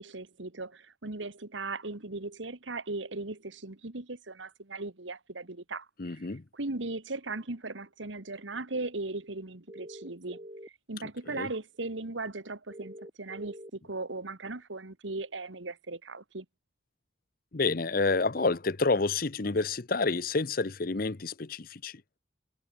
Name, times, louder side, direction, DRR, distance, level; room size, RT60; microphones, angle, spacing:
voice 1, 0.0-6.2 6.5-10.4 10.9-16.5, right 3 dB, 80° right, 1.8 m, -38 dB
voice 2, 6.0-6.4 11.4-11.5 17.5-22.0, left 3 dB, 50° left, 0.8 m, -29 dB
sound 1, 9.7-10.7 12.7-13.7, right 1 dB, 30° right, 5.1 m, -45 dB
head